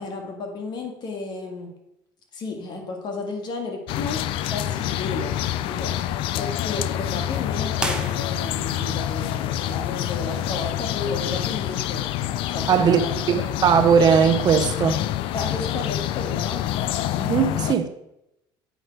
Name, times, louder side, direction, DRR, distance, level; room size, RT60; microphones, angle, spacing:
voice 1, 0.0-1.7 2.3-4.2 4.5-12.1 12.5-13.2 15.3-16.7 17.5-17.6, left 3 dB, 50° left, 1.9 m, -33 dB
sound 1, 3.9-17.8, left 12 dB, 70° left, 0.4 m, -27 dB
sound 2, 7.7-8.8, right 2 dB, 10° right, 1.2 m, -31 dB
voice 2, 12.7-13.0 13.3-15.0 17.2-17.9, right 7 dB, 45° right, 0.7 m, -19 dB
8.1 x 5.3 x 4.6 m
supercardioid pair, 100°, 9 cm